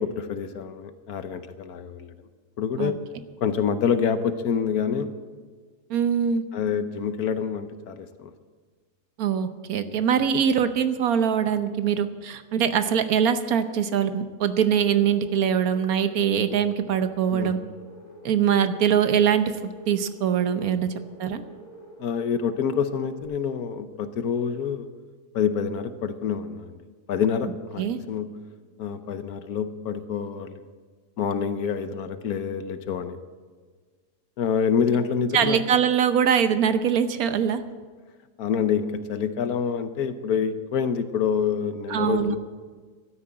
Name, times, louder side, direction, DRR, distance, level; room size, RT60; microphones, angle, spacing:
voice 1, 0.0-2.1 2.6-3.0 3.4-5.2 6.5-8.3 17.3-17.5 22.0-24.9 25.3-26.8 27.1-28.3 28.8-30.6 31.2-33.2 34.4-35.6 38.4-42.4, left 7 dB, 70° left, 11 dB, 1.3 m, -27 dB
voice 2, 5.9-6.4 9.2-17.6 18.2-20.9 21.2-21.4 27.8-28.0 35.3-37.6 41.9-42.4, right 8 dB, 65° right, 10 dB, 1.2 m, -23 dB
sound 1, 14.4-23.2, equal, 10° right, 2.8 m, -47 dB
12.5 x 9.9 x 8.6 m, 1.5 s
omnidirectional pair, 1.7 m